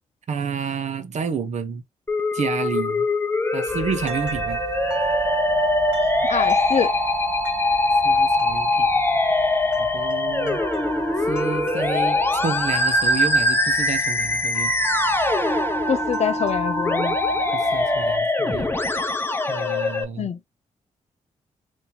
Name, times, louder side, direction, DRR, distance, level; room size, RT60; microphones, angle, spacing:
voice 1, 0.3-1.8 2.3-3.1 3.5-4.6 8.0-8.9 9.8-10.6 11.2-14.7 17.5-18.7 19.5-20.3, right 6 dB, 65° right, 0.7 m, -29 dB
Musical instrument, 2.1-20.0, left 2 dB, 15° left, 0.7 m, -22 dB
sound 1, 3.7-18.2, right 4 dB, 5° right, 1.2 m, -31 dB
voice 2, 6.2-6.9 15.9-17.2 20.2-20.4, left 7 dB, 60° left, 0.5 m, -24 dB
2.8 x 2.6 x 3.8 m
cardioid pair, 80°, 13 cm